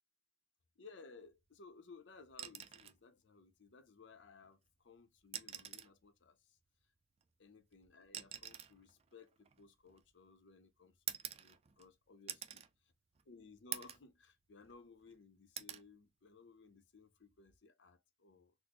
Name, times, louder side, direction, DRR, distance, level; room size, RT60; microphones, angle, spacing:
voice 1, 0.8-6.6 7.4-10.9 11.4-12.6 13.3-18.5, left 4 dB, 85° left, 0.6 m, -60 dB
sound 1, 2.3-3.0 4.4-4.6 5.2-6.0 7.2-10.2 11.1-11.9 12.3-12.7 13.1-13.2 13.7-14.1 14.5-15.1 15.6-15.9 17.3-17.6, right 10 dB, 35° right, 0.4 m, -47 dB
4.1 x 2.0 x 2.9 m
head